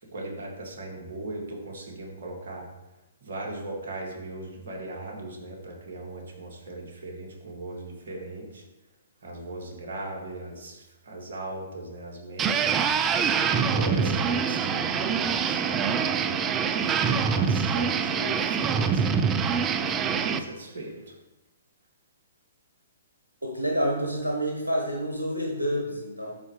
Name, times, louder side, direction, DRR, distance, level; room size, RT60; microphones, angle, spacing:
voice 1, 0.1-2.7 3.2-8.6 9.2-12.8 13.5-21.1, right 2 dB, 60° right, -1 dB, 2.0 m, -38 dB
sound 1, 12.4-20.4, right 6 dB, 20° right, 0.4 m, -25 dB
voice 2, 23.4-26.3, equal, 90° right, 0 dB, 1.3 m, -28 dB
12.0 x 4.3 x 3.2 m, 1.0 s
figure-of-eight pair, 125°, 0 cm